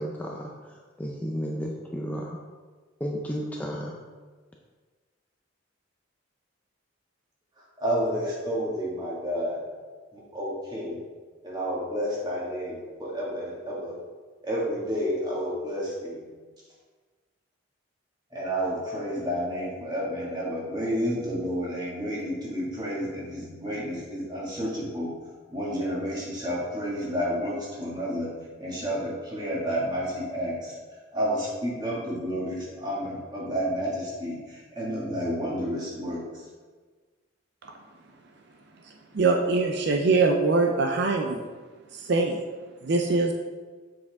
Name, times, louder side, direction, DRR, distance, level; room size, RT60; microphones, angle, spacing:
voice 1, 0.0-2.4 3.0-4.1, equal, 10° left, -2 dB, 0.5 m, -33 dB
voice 2, 7.6-9.6 10.1-11.0 11.4-14.0 14.4-16.3 18.3-25.1 25.5-28.3 28.6-30.8 31.1-36.5, equal, 20° right, -5 dB, 2.0 m, -30 dB
voice 3, 39.1-41.4 41.9-42.4 42.8-43.3, right 3 dB, 55° right, 3 dB, 0.5 m, -23 dB
7.6 x 6.1 x 3.6 m, 1.4 s
head